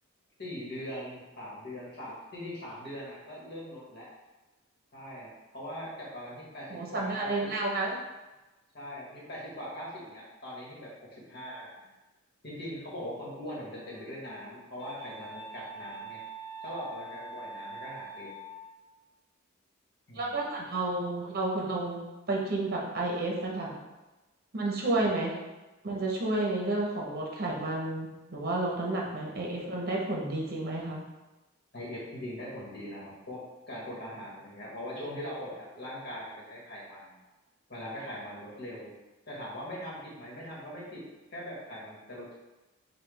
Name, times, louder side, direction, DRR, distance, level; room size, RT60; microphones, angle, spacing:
voice 1, 0.4-4.1 4.9-7.5 8.7-11.9 12.4-16.2 16.6-18.3 20.1-20.4 31.7-33.4 33.7-37.2 37.7-38.9 39.3-41.0 41.3-42.3, equal, 50° left, -5 dB, 1.3 m, -41 dB
voice 2, 6.7-7.9 20.2-22.0 22.3-23.8 24.5-25.3 25.8-31.0, right 2 dB, 45° right, -2 dB, 0.8 m, -31 dB
Wind instrument woodwind instrument, 13.8-18.9, right 2 dB, 20° left, 1.1 m, -45 dB
5.6 x 2.3 x 3.3 m, 1.1 s
head